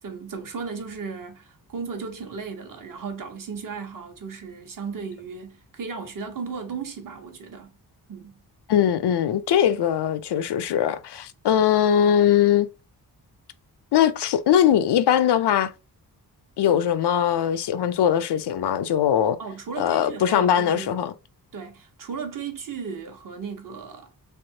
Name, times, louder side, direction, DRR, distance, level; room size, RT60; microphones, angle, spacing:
voice 1, 0.0-7.7 8.1-8.4 19.4-20.9 21.5-24.1, right 5 dB, 55° right, 1.0 m, -35 dB
voice 2, 8.7-12.7 13.9-15.7 16.6-19.4 19.8-21.1, left 9 dB, 90° left, 0.6 m, -21 dB
3.5 x 3.4 x 2.7 m
wide cardioid pair, 175°, 39 cm